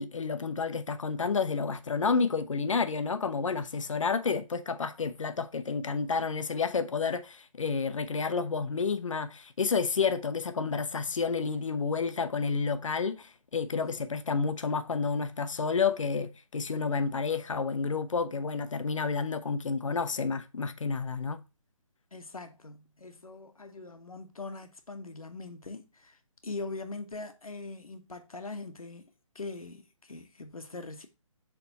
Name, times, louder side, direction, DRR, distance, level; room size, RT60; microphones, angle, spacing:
voice 1, 0.0-21.4, left 5 dB, 65° left, 0.8 m, -30 dB
voice 2, 13.7-14.3 22.1-31.1, left 3 dB, 80° left, 1.1 m, -42 dB
7.1 x 3.5 x 4.1 m
figure-of-eight pair, 150°, 18 cm